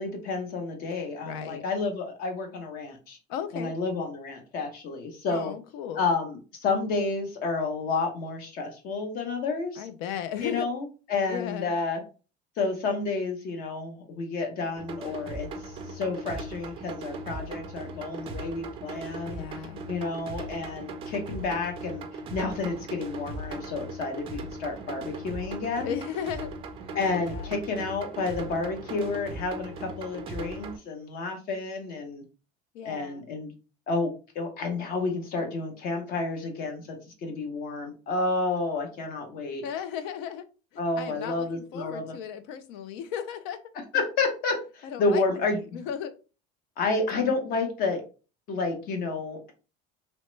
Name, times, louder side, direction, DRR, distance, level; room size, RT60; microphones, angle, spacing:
voice 1, 0.0-3.2 3.5-5.5 6.0-9.9 10.4-12.0 12.6-19.4 19.9-22.0 22.3-26.0 26.9-32.2 32.8-33.5 33.9-39.6 40.8-42.2 43.9-45.8 46.8-48.0 48.5-49.5, left 3 dB, 50° left, 4 dB, 0.8 m, -30 dB
voice 2, 1.3-1.6 3.3-3.7 5.3-6.0 9.8-10.7 11.3-11.7 19.3-19.8 25.8-26.5 27.2-27.5 32.7-33.2 39.6-40.5 41.0-43.6 44.8-45.2 45.5-46.1, left 8 dB, 75° left, 11 dB, 0.5 m, -35 dB
sound 1, 14.8-30.8, right 2 dB, 25° right, 0.3 m, -38 dB
3.0 x 2.2 x 3.1 m, 0.34 s
cardioid pair, 175°, 20 cm